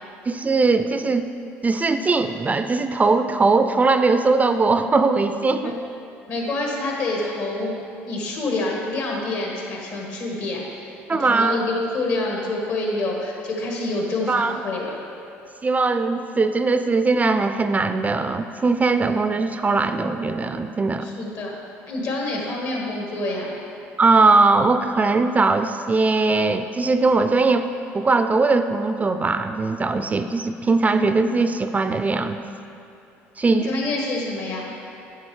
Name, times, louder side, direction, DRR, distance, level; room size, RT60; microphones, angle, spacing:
voice 1, 0.3-1.2 1.6-5.8 11.1-11.6 14.3-14.5 15.6-21.1 24.0-27.7 27.9-32.4 33.4-33.7, right 3 dB, 25° right, 9 dB, 0.3 m, -20 dB
voice 2, 6.3-7.7 8.0-10.6 11.2-14.9 21.0-21.5 21.9-23.5 33.4-34.7, left 2 dB, 65° left, -1 dB, 1.7 m, -27 dB
9.2 x 6.2 x 3.2 m, 2.6 s
hypercardioid pair, 70°, 6 cm